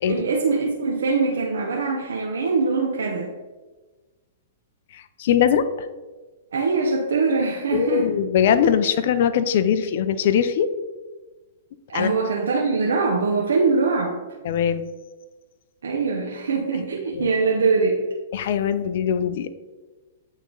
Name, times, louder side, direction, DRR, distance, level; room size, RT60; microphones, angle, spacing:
voice 1, 0.0-3.3 6.5-8.1 11.9-14.2 15.8-18.0, right 4 dB, 85° right, 0 dB, 0.7 m, -22 dB
voice 2, 4.9-5.7 7.7-10.7 11.9-12.1 14.4-14.9 17.1-17.3 18.3-19.5, left 8 dB, 60° left, 11 dB, 0.5 m, -21 dB
8.9 x 3.1 x 3.9 m, 1.2 s
hypercardioid pair, 130°, 0 cm